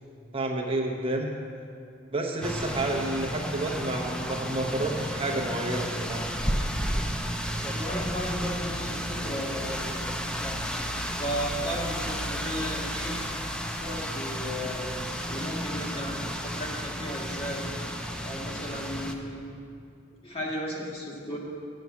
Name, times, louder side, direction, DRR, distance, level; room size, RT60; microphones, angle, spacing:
voice 1, 0.3-1.3 2.1-6.3, right 2 dB, 30° right, 0 dB, 0.8 m, -30 dB
sound 1, 2.4-19.1, equal, 5° left, 0.5 m, -32 dB
voice 2, 7.5-10.0 11.2-13.1 13.8-14.9 15.3-17.6 18.2-19.4 20.2-21.4, equal, 30° left, -3 dB, 1.6 m, -35 dB
7.6 x 7.0 x 8.2 m, 2.4 s
head